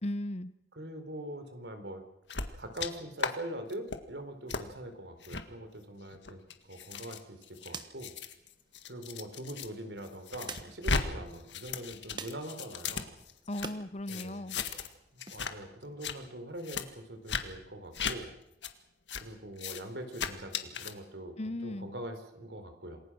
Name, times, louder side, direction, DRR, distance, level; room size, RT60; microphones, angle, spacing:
voice 1, 0.0-0.5 13.5-14.6 21.4-21.9, left 1 dB, 35° left, 15 dB, 0.8 m, -36 dB
voice 2, 0.8-2.0 2.6-6.4 6.7-8.1 8.9-13.1 14.1-14.4 15.1-18.3 19.2-21.3 21.6-23.0, right 1 dB, 75° right, 8 dB, 4.0 m, -43 dB
sound 1, 2.3-2.9 3.2-3.3 3.7-4.0 4.5-4.6 5.2-5.4 6.1-9.7 10.0-11.0 11.3-13.7 14.1-14.9 15.2-15.5 15.8-16.1 16.6-16.8 17.3-17.4 17.9-18.1 18.6-18.7 19.1-19.2 19.6-19.8 20.1-20.9, left 5 dB, 85° left, 1.8 m, -36 dB
sound 2, 6.6-13.8 14.2-15.3, right 4 dB, 25° right, 1.3 m, -50 dB
28.0 x 20.5 x 6.3 m, 0.84 s
head